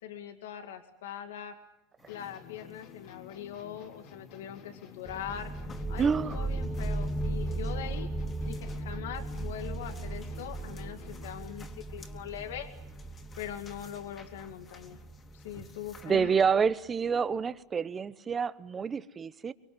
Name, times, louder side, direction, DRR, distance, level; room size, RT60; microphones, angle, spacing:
voice 1, 0.0-1.6 2.1-5.5 5.9-8.1 8.5-12.7 13.4-15.0 15.3-16.3, left 9 dB, 90° left, 7 dB, 2.2 m, -42 dB
sound 1, 2.0-16.1, left 3 dB, 25° left, 2.9 m, -55 dB
sound 2, 2.1-11.5, left 9 dB, 55° left, 3.5 m, -52 dB
sound 3, 5.1-16.5, right 2 dB, 5° left, 1.8 m, -37 dB
voice 2, 6.0-6.4 16.0-19.5, right 6 dB, 20° right, 15 dB, 1.0 m, -28 dB
24.5 x 23.0 x 9.6 m, 0.82 s
supercardioid pair, 135°, 0 cm